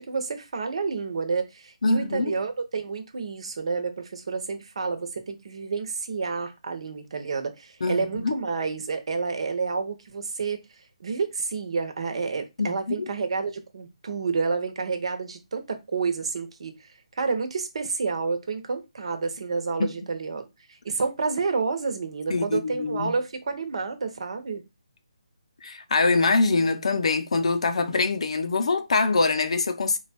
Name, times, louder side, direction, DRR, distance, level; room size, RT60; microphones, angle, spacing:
voice 1, 0.0-10.6 11.0-16.9 17.2-20.4 20.8-24.6, right 4 dB, 55° right, 1.1 m, -29 dB
voice 2, 1.8-2.3 7.8-8.3 12.6-13.1 19.8-19.9 22.3-23.1 25.6-30.0, left 3 dB, 60° left, 0.7 m, -24 dB
4.6 x 2.4 x 4.2 m
figure-of-eight pair, 155°, 4 cm